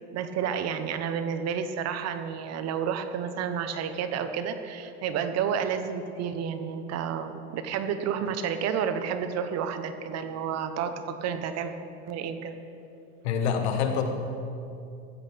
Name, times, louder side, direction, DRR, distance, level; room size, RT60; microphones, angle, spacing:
voice 1, 0.1-11.7 12.1-12.6, right 7 dB, 50° right, 9 dB, 1.1 m, -30 dB
voice 2, 13.2-14.0, left 7 dB, 85° left, 5 dB, 1.7 m, -26 dB
14.5 x 14.5 x 3.6 m, 2.6 s
supercardioid pair, 100°, 33 cm